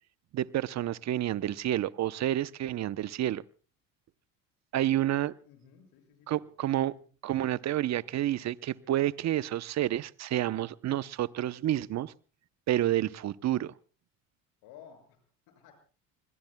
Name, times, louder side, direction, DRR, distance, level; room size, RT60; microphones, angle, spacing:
voice 1, 0.3-3.4 4.7-5.3 6.3-6.9 7.2-12.1 12.7-13.7, right 13 dB, 45° right, 0.8 m, -29 dB
voice 2, 5.4-7.1 14.6-15.8, left 8 dB, 70° left, 6.7 m, -55 dB
28.5 x 21.5 x 2.2 m
supercardioid pair, 75°, 39 cm